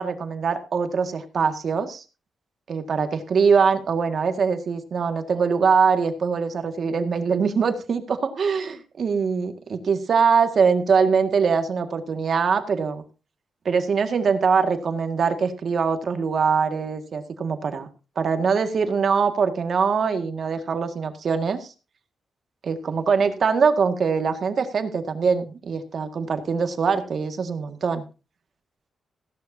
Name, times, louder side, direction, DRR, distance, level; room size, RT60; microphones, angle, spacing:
voice 1, 0.0-2.0 2.7-13.0 13.7-17.9 18.2-21.7 22.6-28.0, right 5 dB, 60° right, 7 dB, 1.8 m, -23 dB
16.0 x 11.5 x 2.7 m, 0.33 s
cardioid pair, 80°, 0 cm